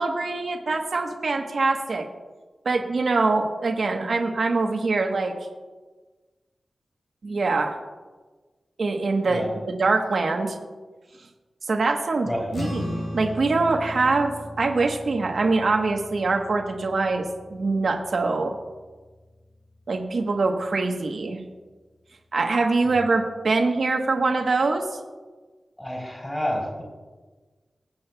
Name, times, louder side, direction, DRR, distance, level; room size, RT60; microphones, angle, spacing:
voice 1, 0.0-2.1 2.6-5.3 7.2-7.8 8.8-10.6 11.6-14.3 14.6-18.6 19.9-21.4 22.3-24.8, right 3 dB, 65° right, 3 dB, 1.1 m, -24 dB
sound 1, 12.5-19.2, left 1 dB, 80° left, 2.9 m, -37 dB
voice 2, 25.8-26.8, equal, 15° left, -2 dB, 3.4 m, -29 dB
22.0 x 8.5 x 2.3 m, 1.3 s
wide cardioid pair, 125°, 0 cm